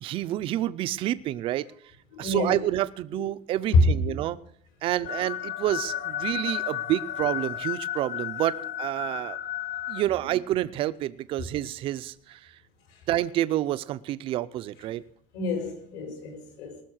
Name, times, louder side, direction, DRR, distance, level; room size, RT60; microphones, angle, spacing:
voice 1, 0.0-1.6 2.2-4.4 4.8-9.4 9.9-12.4 13.1-15.0, right 14 dB, 40° right, 0.5 m, -28 dB
voice 2, 2.1-2.7 3.1-3.2 3.7-4.2 10.2-10.3 12.9-13.0 15.3-16.8, left 2 dB, 65° left, 4.3 m, -26 dB
sound 1, 5.0-10.0, left 12 dB, 40° left, 1.1 m, -33 dB
19.0 x 6.5 x 6.3 m
cardioid pair, 175°, 15 cm